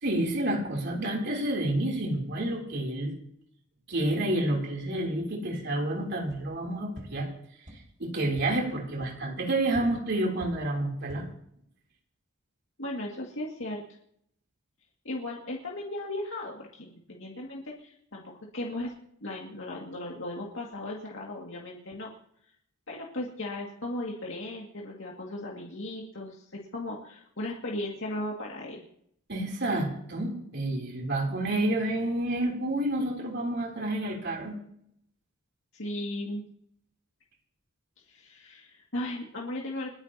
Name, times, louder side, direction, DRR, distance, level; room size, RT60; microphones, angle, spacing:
voice 1, 0.0-3.1 3.9-7.3 8.0-11.3 29.3-34.6, right 1 dB, 60° right, -1 dB, 3.4 m, -29 dB
sound 1, 6.2-6.4 6.9-7.0 7.6-7.7 8.3-8.4 9.0-9.1 9.7-9.8 10.4-10.5 10.9-11.2, equal, 40° right, 5.1 m, -43 dB
voice 2, 12.8-13.8 15.0-18.9 19.2-22.1 22.9-28.8 35.7-36.5 38.1-39.9, left 1 dB, 70° left, -3 dB, 2.3 m, -36 dB
30.0 x 10.0 x 2.9 m, 0.69 s
head